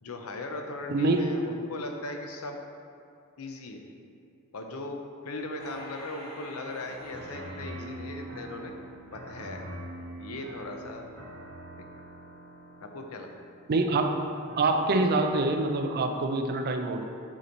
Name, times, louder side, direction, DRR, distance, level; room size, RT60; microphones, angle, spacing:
voice 1, 0.0-2.6 3.4-3.9 4.5-8.7 9.1-9.7 10.2-11.1 12.8-13.3, left 2 dB, 85° left, 4 dB, 0.6 m, -38 dB
voice 2, 0.9-1.3 13.7-14.2 14.6-17.0, right 2 dB, 45° right, 5 dB, 0.4 m, -25 dB
sound 1, 5.6-9.0 9.5-9.6, equal, 50° left, 1.3 m, -48 dB
sound 2, 6.9-16.0, right 1 dB, 75° right, 1.1 m, -44 dB
8.6 x 3.0 x 3.9 m, 2.4 s
head